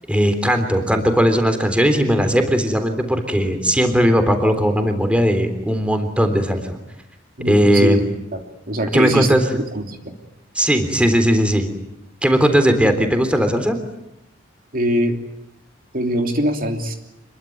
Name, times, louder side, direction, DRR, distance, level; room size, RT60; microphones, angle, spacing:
voice 1, 0.1-6.8 7.5-8.0 8.9-9.5 10.6-11.7 12.2-13.8, equal, 5° right, 7 dB, 3.5 m, -18 dB
voice 2, 7.4-8.0 8.3-8.4 8.7-9.3 9.7-10.0 14.7-15.2 15.9-16.9, right 1 dB, 50° right, 4 dB, 3.1 m, -21 dB
27.0 x 22.5 x 9.4 m, 0.85 s
head